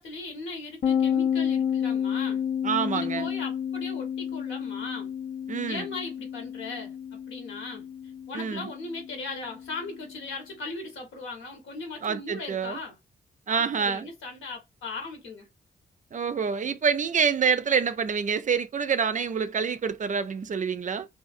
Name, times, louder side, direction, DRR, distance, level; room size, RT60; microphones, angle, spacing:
voice 1, 0.0-2.4 2.9-5.1 5.7-7.9 8.3-12.9 13.5-15.5, left 3 dB, 75° left, 1.1 m, -38 dB
sound 1, 0.8-10.3, left 8 dB, 50° left, 0.5 m, -30 dB
voice 2, 2.6-3.3 5.5-5.9 8.3-8.7 12.0-12.8 13.5-14.1 16.1-21.1, right 6 dB, 40° right, 0.4 m, -27 dB
2.6 x 2.3 x 2.4 m
supercardioid pair, 50°, 20 cm